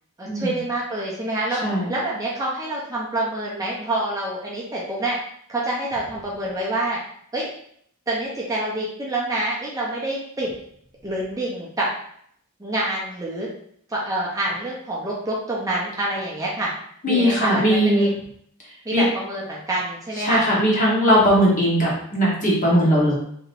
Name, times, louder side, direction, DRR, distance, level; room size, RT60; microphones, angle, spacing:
voice 1, 0.2-1.6 1.9-5.2 5.5-7.0 7.3-7.5 8.1-10.5 11.0-11.9 12.6-13.5 13.9-16.7 17.1-18.1 18.8-20.4, right 1 dB, 15° right, -5 dB, 0.5 m, -27 dB
voice 2, 1.6-1.9 17.0-18.1 18.9-19.0 20.2-23.1, equal, 35° left, -5 dB, 1.0 m, -19 dB
3.4 x 2.8 x 2.5 m, 0.67 s
head